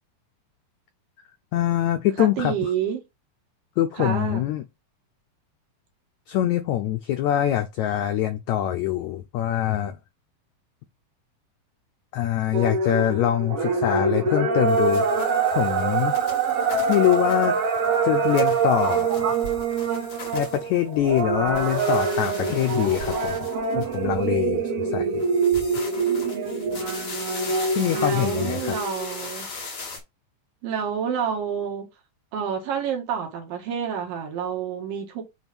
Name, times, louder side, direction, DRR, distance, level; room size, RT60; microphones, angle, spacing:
voice 1, 1.5-2.7 3.8-4.6 6.3-10.0 12.1-16.1 16.9-17.6 18.0-19.3 20.3-23.5 23.7-25.2 27.7-28.8, left 12 dB, 85° left, 1.6 m, -24 dB
voice 2, 2.2-3.0 4.0-4.5 27.9-29.5 30.6-31.9 32.3-35.2, right 7 dB, 75° right, 3.2 m, -28 dB
sound 1, 12.5-29.2, right 4 dB, 55° right, 1.8 m, -25 dB
sound 2, 14.7-21.2 21.5-24.3 25.1-30.0, left 4 dB, 50° left, 3.2 m, -39 dB
7.1 x 3.0 x 6.0 m
omnidirectional pair, 4.0 m